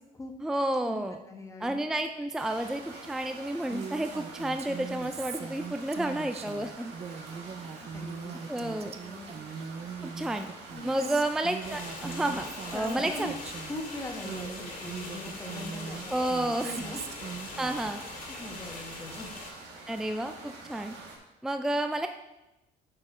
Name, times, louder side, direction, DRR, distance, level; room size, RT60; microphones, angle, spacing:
voice 1, 0.4-1.2 1.6-6.9 8.5-8.9 10.0-10.5 10.8-13.3 16.1-16.7 17.6-18.0 19.9-20.9 21.4-22.1, right 1 dB, 5° right, 7 dB, 0.4 m, -31 dB
voice 2, 1.3-1.8 7.5-9.4 10.7-11.2 12.7-13.3 13.7-16.3 16.6-17.0 18.3-19.3, left 2 dB, 20° left, 2 dB, 1.3 m, -41 dB
sound 1, 2.4-21.2, right 3 dB, 85° right, 1.9 m, -47 dB
Female speech woman speaking, 3.7-13.8 14.2-18.0, right 6 dB, 40° right, 0.7 m, -41 dB
sound 2, 11.6-19.5, left 3 dB, 65° left, 2.3 m, -42 dB
8.3 x 5.3 x 4.9 m, 0.97 s
cardioid pair, 110°, 17 cm